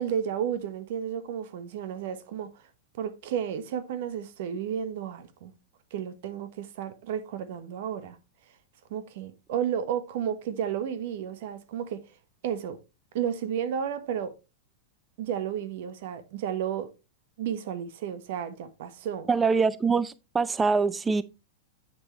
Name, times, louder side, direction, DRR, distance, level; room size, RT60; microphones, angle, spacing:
voice 1, 0.0-2.5 2.9-5.5 5.9-8.2 8.9-12.0 12.4-12.8 13.1-14.3 15.2-16.9 17.4-19.3, right 9 dB, 65° right, 1.2 m, -32 dB
voice 2, 19.3-21.2, right 4 dB, 15° right, 0.6 m, -24 dB
8.2 x 6.5 x 3.1 m
hypercardioid pair, 125°, 0 cm